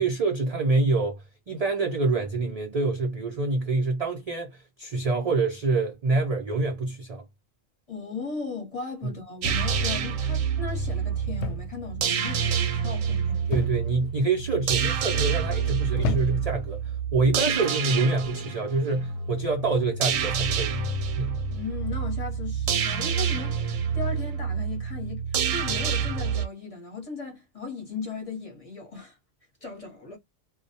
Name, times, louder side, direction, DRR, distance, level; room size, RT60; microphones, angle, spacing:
voice 1, 0.0-7.2 13.5-20.8 21.2-21.4, right 3 dB, 70° right, 0.3 m, -26 dB
voice 2, 7.9-13.6 21.5-29.2 29.6-30.2, left 4 dB, 30° left, 0.8 m, -37 dB
sound 1, 9.4-10.0 11.4-11.8 12.1-12.5 13.5-14.1 14.8-15.2 16.0-16.6 17.6-17.8, left 3 dB, 70° left, 0.8 m, -32 dB
sound 2, 9.4-26.5, right 7 dB, 85° right, 1.0 m, -28 dB
2.2 x 2.1 x 2.6 m
omnidirectional pair, 1.3 m